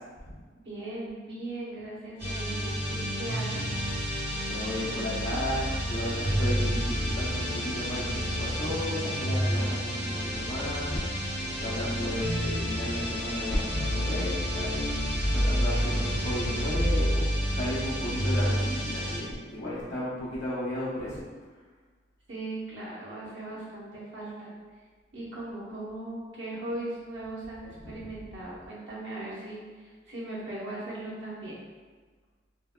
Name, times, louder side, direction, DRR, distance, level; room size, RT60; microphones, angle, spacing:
voice 1, 0.6-3.8 11.3-11.5 22.3-24.5 25.1-31.6, right 2 dB, 75° right, -7 dB, 0.9 m, -38 dB
sound 1, 2.2-19.2, equal, 30° right, 1.1 m, -29 dB
voice 2, 4.5-11.0 11.6-21.2 27.8-28.0, left 1 dB, 85° left, -10 dB, 0.7 m, -34 dB
3.3 x 2.1 x 2.2 m, 1.4 s
head